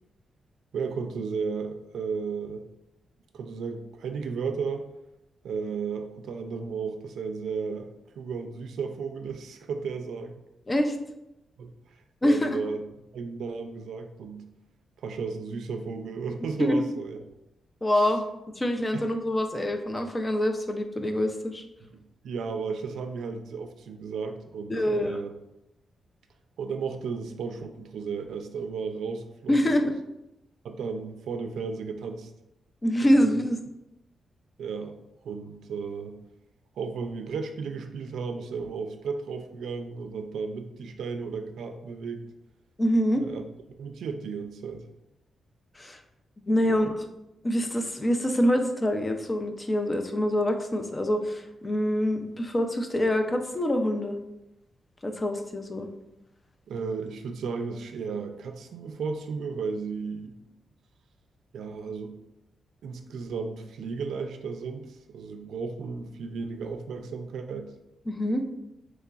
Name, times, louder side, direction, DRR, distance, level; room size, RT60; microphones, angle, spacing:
voice 1, 0.7-2.6 3.3-4.9 5.4-7.9 8.2-10.3 11.6-11.7 12.2-12.8 13.1-14.4 15.0-17.2 18.0-18.1 18.9-19.1 21.9-25.3 26.6-29.9 30.6-32.3 33.0-33.3 34.6-35.0 35.2-36.2 36.8-42.2 43.2-43.4 43.8-44.8 46.6-46.9 56.7-60.4 61.5-62.2 62.8-67.7, right 5 dB, 85° right, 6 dB, 0.3 m, -34 dB
voice 2, 12.2-12.6 16.6-16.8 17.8-18.3 18.6-21.6 24.7-25.2 29.5-29.9 32.8-33.6 42.8-43.2 45.8-46.0 46.5-47.0 47.4-54.2 55.0-55.9 68.1-68.4, equal, 20° left, 5 dB, 0.3 m, -25 dB
3.8 x 3.1 x 2.3 m, 0.88 s
wide cardioid pair, 140°, 0 cm